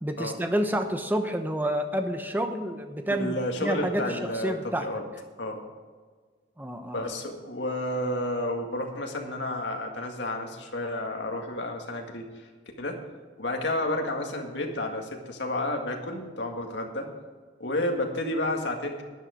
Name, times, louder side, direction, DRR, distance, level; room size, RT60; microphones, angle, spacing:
voice 1, 0.0-4.9 6.6-7.0, right 1 dB, 10° right, 6 dB, 0.9 m, -29 dB
voice 2, 3.1-5.0 5.4-5.6 6.9-12.5 12.8-13.0 13.4-17.1 17.6-19.0, left 1 dB, 75° left, 2 dB, 2.0 m, -31 dB
11.5 x 10.5 x 5.1 m, 1.5 s
head